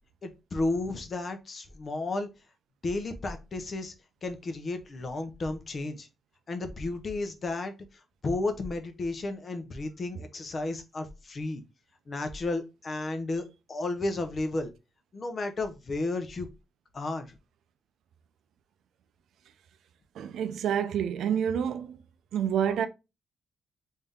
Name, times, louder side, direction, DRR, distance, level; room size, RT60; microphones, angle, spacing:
voice 1, 0.2-2.3 2.8-3.9 4.2-6.1 6.5-7.7 8.2-11.6 12.1-14.7 15.1-16.5 16.9-17.4, left 2 dB, 45° left, 0.8 m, -33 dB
voice 2, 20.1-22.0 22.3-22.9, right 8 dB, 85° right, 0.4 m, -28 dB
3.5 x 2.7 x 3.5 m
cardioid pair, 95°, 0 cm